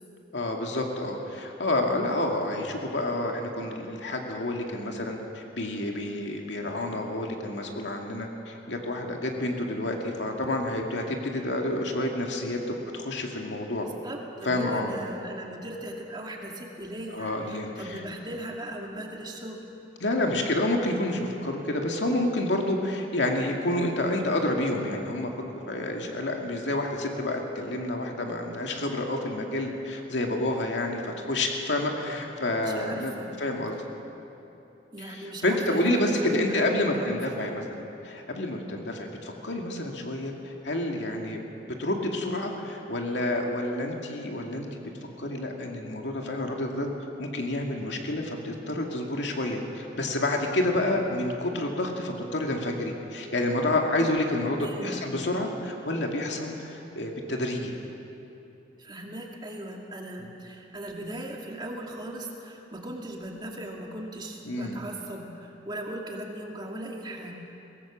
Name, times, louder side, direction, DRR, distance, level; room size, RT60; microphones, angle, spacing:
voice 1, 0.3-13.9 14.4-14.9 17.1-18.0 20.0-25.3 25.7-33.1 33.4-33.8 35.0-37.6 38.0-44.9 45.2-46.9 47.2-57.7 64.5-64.8, left 1 dB, 85° left, 1 dB, 2.2 m, -29 dB
voice 2, 13.8-19.7 32.6-33.3 34.9-37.2 54.6-55.1 58.8-67.5, right 1 dB, 25° right, 0 dB, 2.4 m, -38 dB
23.0 x 18.0 x 7.4 m, 3.0 s
head